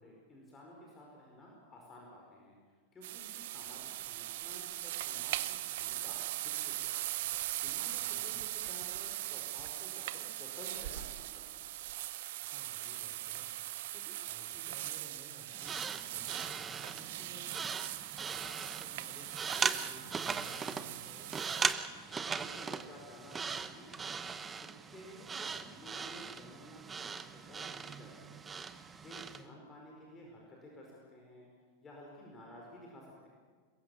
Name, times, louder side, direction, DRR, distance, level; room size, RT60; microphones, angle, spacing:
voice 1, 0.0-2.6 2.9-7.0 7.5-11.7 22.0-24.2 24.6-28.4 28.9-31.5 31.8-33.3, left 1 dB, 20° left, -1 dB, 5.0 m, -53 dB
sound 1, 3.0-21.7, right 15 dB, 55° right, 0.8 m, -40 dB
voice 2, 7.9-8.4 12.4-17.7 18.3-19.3 19.6-21.3 29.3-29.5, equal, ahead, -1 dB, 4.0 m, -56 dB
sound 2, 15.6-29.4, right 5 dB, 20° right, 1.0 m, -39 dB
23.0 x 21.5 x 7.1 m, 1.5 s
figure-of-eight pair, 90°, 0 cm